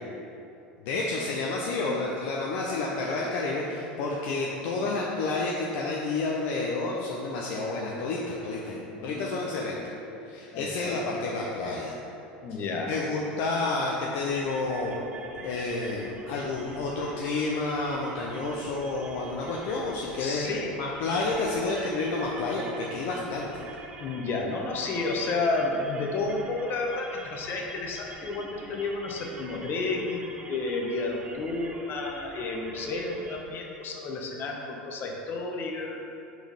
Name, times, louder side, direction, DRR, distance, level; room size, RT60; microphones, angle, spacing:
voice 1, 0.8-9.8 10.3-11.9 12.9-15.0 15.4-20.5 20.8-23.6, left 3 dB, 60° left, -3 dB, 0.6 m, -30 dB
voice 2, 8.9-9.4 10.5-11.3 12.4-12.9 20.2-20.7 24.0-36.0, left 3 dB, 45° left, 0 dB, 1.0 m, -31 dB
sound 1, 14.3-33.4, right 3 dB, 30° right, 0.7 m, -46 dB
5.2 x 3.8 x 5.2 m, 2.8 s
hypercardioid pair, 80°, 5 cm